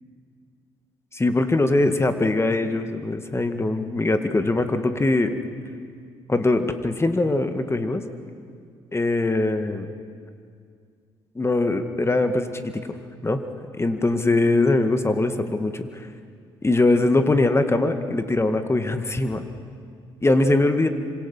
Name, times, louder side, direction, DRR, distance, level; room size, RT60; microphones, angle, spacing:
voice 1, 1.1-5.3 6.3-8.0 8.9-9.9 11.4-12.6 13.2-13.4 13.8-16.1 16.6-19.4 20.2-20.9, left 2 dB, 20° left, 8 dB, 2.0 m, -22 dB
26.5 x 25.5 x 5.7 m, 2.2 s
hypercardioid pair, 50°, 12 cm